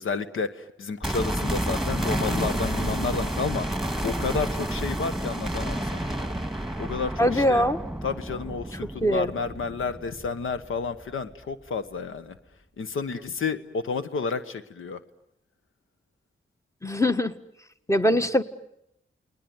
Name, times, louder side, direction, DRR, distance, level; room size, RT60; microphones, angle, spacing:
voice 1, 0.0-6.4 6.8-7.6 8.0-12.3 12.8-15.0, left 5 dB, 90° left, 11 dB, 1.3 m, -31 dB
sound 1, 1.0-11.0 11.3-11.4, right 1 dB, ahead, 2.8 m, -30 dB
voice 2, 7.2-7.8 9.0-9.3 16.8-17.3 17.9-18.4, equal, 15° left, 9 dB, 1.7 m, -22 dB
29.5 x 20.5 x 9.5 m, 0.81 s
cardioid pair, 45°, 20 cm